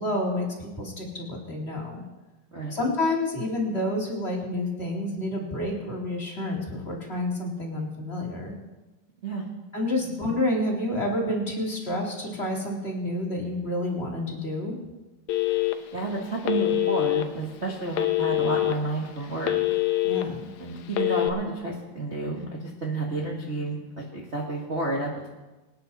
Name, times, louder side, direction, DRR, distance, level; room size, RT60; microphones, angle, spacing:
voice 1, 0.0-2.0 2.7-8.5 9.7-14.8 20.0-20.5, left 1 dB, 20° left, -2 dB, 2.2 m, -29 dB
Telephone, 15.3-16.0 16.4-17.2 17.9-18.7 19.2-20.2 20.9-21.3, left 18 dB, 80° left, 2.5 m, -24 dB
voice 2, 15.9-19.6 20.6-25.3, right 2 dB, 85° right, -3 dB, 0.6 m, -31 dB
24.5 x 9.4 x 4.2 m, 1.1 s
omnidirectional pair, 4.4 m